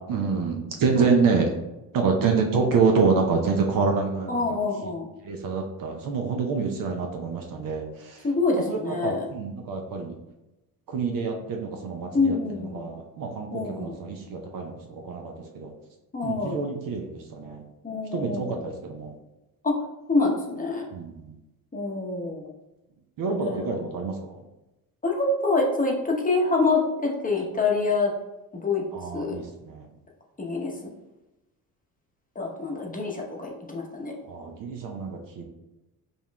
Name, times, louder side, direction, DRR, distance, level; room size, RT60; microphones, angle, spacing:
voice 1, 0.1-1.5 1.9-4.6 5.2-8.3 8.7-10.2 10.9-15.7 16.2-17.6 18.1-19.1 20.9-21.3 23.2-24.4 28.9-29.9 34.2-35.4, right 4 dB, 45° right, 2 dB, 0.6 m, -27 dB
voice 2, 4.3-5.1 8.2-9.3 12.1-12.8 13.5-13.9 16.1-16.6 17.8-18.6 19.6-19.8 20.1-20.9 21.7-22.5 23.3-23.7 25.0-28.1 28.5-28.8 29.1-29.3 30.4-30.7 32.3-34.1, left 3 dB, 20° left, -1 dB, 0.8 m, -26 dB
5.3 x 2.4 x 2.2 m, 0.98 s
hypercardioid pair, 55°, 46 cm